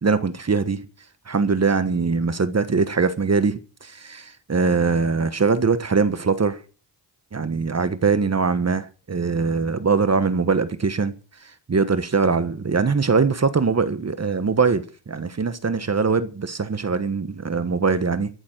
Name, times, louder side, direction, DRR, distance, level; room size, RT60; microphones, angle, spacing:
voice 1, 0.0-0.9 1.3-6.6 7.3-11.1 11.7-18.3, right 4 dB, 35° right, 1.4 m, -22 dB
14.5 x 7.3 x 9.0 m
cardioid pair, 90°, 44 cm